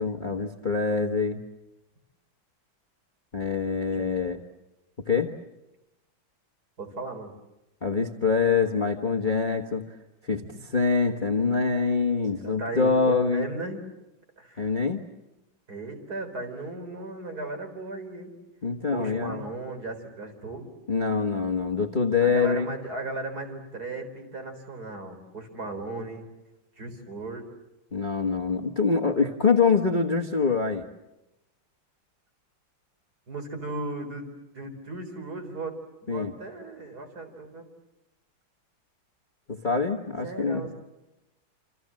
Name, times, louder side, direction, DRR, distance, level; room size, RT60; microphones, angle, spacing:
voice 1, 0.0-1.4 3.3-4.4 5.1-5.3 7.8-9.8 10.2-13.5 14.6-15.0 18.6-19.4 20.9-22.7 27.9-30.8 36.1-36.3 39.5-40.7, left 5 dB, 25° left, 4 dB, 1.3 m, -25 dB
voice 2, 6.8-7.3 12.4-13.8 14.4-14.7 15.7-18.4 18.9-20.7 22.2-26.3 26.8-27.5 33.3-34.3 34.5-37.7 40.2-40.7, right 2 dB, 50° right, 6 dB, 4.8 m, -36 dB
28.0 x 28.0 x 7.6 m, 0.97 s
omnidirectional pair, 2.2 m